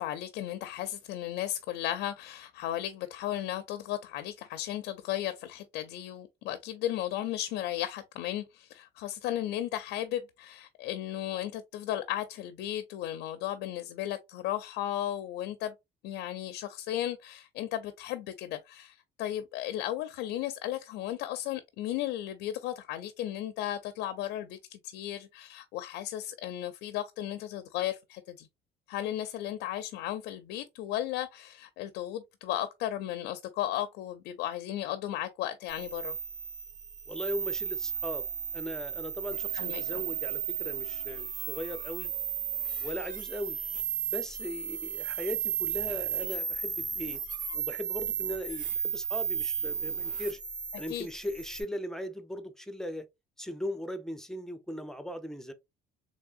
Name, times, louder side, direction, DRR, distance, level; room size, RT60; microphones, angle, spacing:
voice 1, 0.0-15.7 16.0-28.5 28.9-36.2 39.5-40.0 50.9-51.1, left 12 dB, 85° left, 0.4 m, -35 dB
sound 1, 35.7-51.6, right 8 dB, 50° right, 1.2 m, -34 dB
voice 2, 37.1-38.2 38.5-42.1 42.8-43.6 44.1-47.2 47.5-50.4 50.8-53.1 53.4-55.5, left 1 dB, 5° left, 0.6 m, -38 dB
3.5 x 3.2 x 2.4 m
cardioid pair, 110°, 17 cm